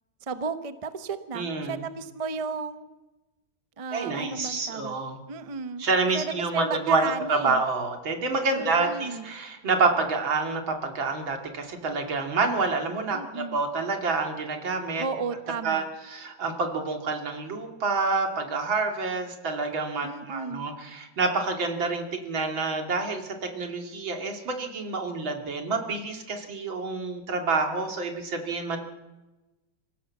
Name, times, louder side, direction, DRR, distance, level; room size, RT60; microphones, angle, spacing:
voice 1, 0.2-2.9 3.8-5.0 5.3-5.9 6.1-7.6 8.5-9.3 13.1-13.6 15.0-15.9 20.0-20.7, right 5 dB, 25° right, 10 dB, 0.7 m, -34 dB
voice 2, 1.3-1.8 3.9-5.2 5.8-15.0 15.6-28.8, right 3 dB, 85° right, 3 dB, 3.3 m, -28 dB
25.0 x 15.5 x 7.4 m, 1.1 s
omnidirectional pair, 2.1 m